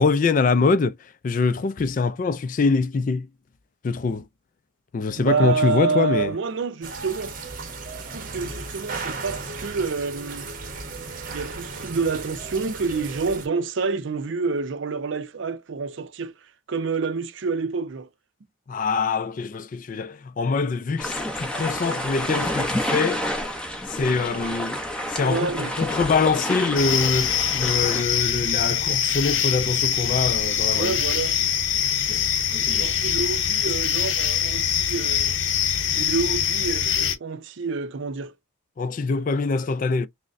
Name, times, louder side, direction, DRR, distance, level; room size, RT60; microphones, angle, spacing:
voice 1, 0.0-3.3 3.8-4.3 4.9-6.3 18.7-23.3 23.9-24.8 25.1-31.0 32.1-32.2 32.5-33.0 38.8-40.1, left 4 dB, 40° left, 0.3 m, -24 dB
voice 2, 5.2-7.4 8.1-10.5 11.3-16.3 16.7-18.1 25.2-25.7 30.7-31.4 32.7-35.4 35.9-38.3, right 4 dB, 60° right, 0.5 m, -28 dB
sound 1, 6.8-13.5, right 4 dB, 40° right, 0.8 m, -35 dB
sound 2, 21.0-28.0, equal, 5° left, 0.7 m, -29 dB
sound 3, 26.8-37.2, left 8 dB, 60° left, 0.7 m, -23 dB
6.2 x 2.1 x 2.5 m
head